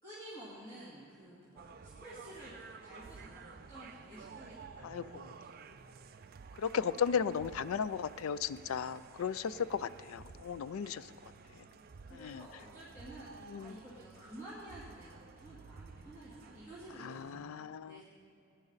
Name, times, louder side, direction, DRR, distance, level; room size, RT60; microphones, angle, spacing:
voice 1, 0.0-2.5 2.8-5.5 7.2-7.3 9.7-9.8 11.1-11.3 12.1-18.0, right 1 dB, 20° left, -9 dB, 2.4 m, -51 dB
sound 1, 1.6-17.5, right 5 dB, 45° right, 0.4 m, -53 dB
voice 2, 4.8-5.2 6.6-11.1 12.1-12.5 13.5-13.8 17.0-18.0, left 7 dB, 75° left, 17 dB, 0.4 m, -35 dB
19.5 x 9.8 x 4.0 m, 2.7 s
head